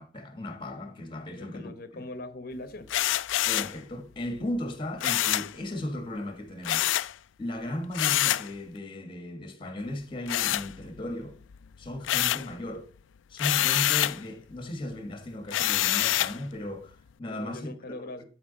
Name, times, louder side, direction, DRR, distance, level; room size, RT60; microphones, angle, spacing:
voice 1, 0.0-2.0 3.4-6.9 7.4-11.4 11.8-12.9 13.3-17.7 18.0-18.1, left 1 dB, 25° left, 1.6 m, -36 dB
voice 2, 1.3-2.9 17.3-18.3, left 2 dB, 50° left, 1.0 m, -41 dB
sound 1, 2.9-3.8 5.0-5.5 6.6-7.1 7.9-8.5 10.3-11.1 11.5-12.5 13.4-14.2 15.5-16.4, left 14 dB, 90° left, 0.4 m, -26 dB
11.0 x 4.8 x 4.0 m
head